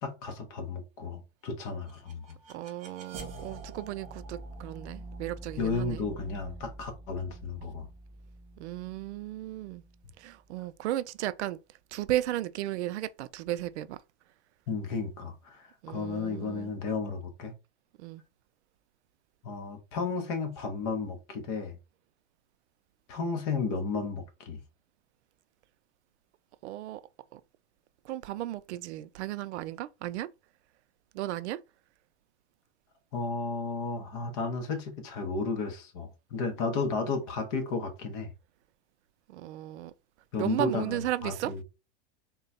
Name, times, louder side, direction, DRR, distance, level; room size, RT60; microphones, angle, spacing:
voice 1, 0.0-2.4 5.6-7.9 14.7-17.5 19.4-21.8 23.1-24.6 33.1-38.3 40.3-41.6, left 4 dB, 30° left, 0.8 m, -33 dB
sound 1, 1.7-10.6, right 2 dB, 15° right, 0.3 m, -46 dB
voice 2, 2.5-6.0 8.6-9.8 10.2-11.6 11.9-14.0 15.8-16.7 18.0-18.2 26.6-27.0 27.3-27.4 28.0-30.3 31.1-31.6 39.3-39.9 40.4-41.6, right 14 dB, 80° right, 0.5 m, -35 dB
3.7 x 2.3 x 4.1 m
supercardioid pair, 175°, 33 cm